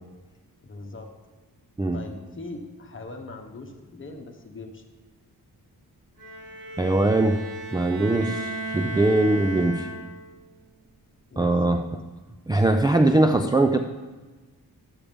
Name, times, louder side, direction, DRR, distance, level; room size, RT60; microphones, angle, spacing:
voice 1, 0.6-1.1 1.9-4.8 11.3-11.8, left 2 dB, 35° left, 3 dB, 1.2 m, -40 dB
Bowed string instrument, 6.2-10.3, right 2 dB, 60° right, 2.4 m, -35 dB
voice 2, 6.8-7.4 7.7-9.9 11.4-11.9 12.5-13.8, right 2 dB, 10° right, 6 dB, 0.3 m, -21 dB
11.0 x 8.4 x 3.5 m, 1.3 s
wide cardioid pair, 100°, 37 cm